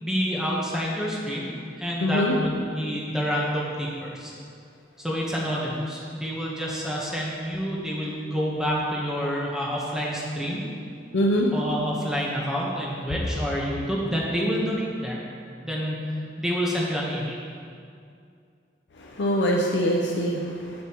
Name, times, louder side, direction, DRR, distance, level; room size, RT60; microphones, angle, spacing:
voice 1, 0.0-1.5 1.8-4.3 5.0-10.6 11.5-15.2 15.6-16.0 16.4-17.5, equal, 5° right, -4 dB, 1.0 m, -28 dB
voice 2, 2.0-2.4 11.1-11.5 19.0-20.8, equal, 75° left, -2 dB, 0.6 m, -24 dB
7.8 x 6.8 x 3.0 m, 2.3 s
head